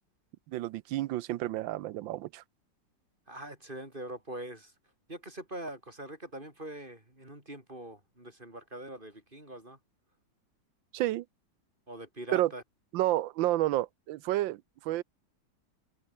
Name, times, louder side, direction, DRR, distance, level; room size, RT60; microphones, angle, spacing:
voice 1, 0.5-2.4 10.9-11.2 12.3-12.5 12.9-15.0, right 15 dB, 90° right, 1.4 m, -30 dB
voice 2, 3.3-4.7 5.1-9.8 11.9-12.6, right 1 dB, 25° right, 5.8 m, -43 dB
omnidirectional pair, 2.0 m